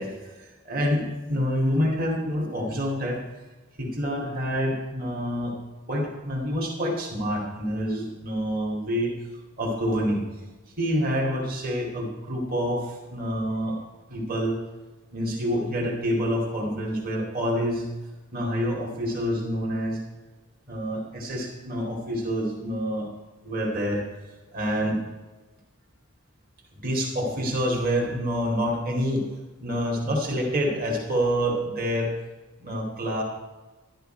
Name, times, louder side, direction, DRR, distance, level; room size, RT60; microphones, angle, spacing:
voice 1, 0.0-3.2 3.8-5.5 5.9-9.1 9.6-10.2 10.8-13.8 14.1-14.6 15.1-17.9 18.3-20.0 20.7-23.1 23.4-24.0 24.5-25.0 26.8-29.3 29.6-32.1 32.6-33.2, equal, 40° right, -1 dB, 2.4 m, -27 dB
12.0 x 12.0 x 4.5 m, 1.2 s
head